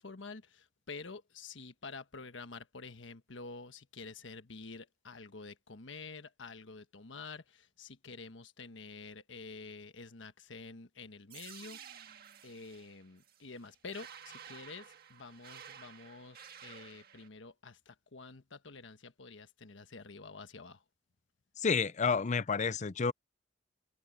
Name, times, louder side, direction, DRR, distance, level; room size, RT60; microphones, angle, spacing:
voice 1, 0.0-12.1 12.4-20.8, left 4 dB, 80° left, 1.3 m, -48 dB
sound 1, 11.3-17.3, right 8 dB, 55° right, 1.7 m, -52 dB
voice 2, 21.6-23.1, left 5 dB, 40° left, 0.6 m, -30 dB
head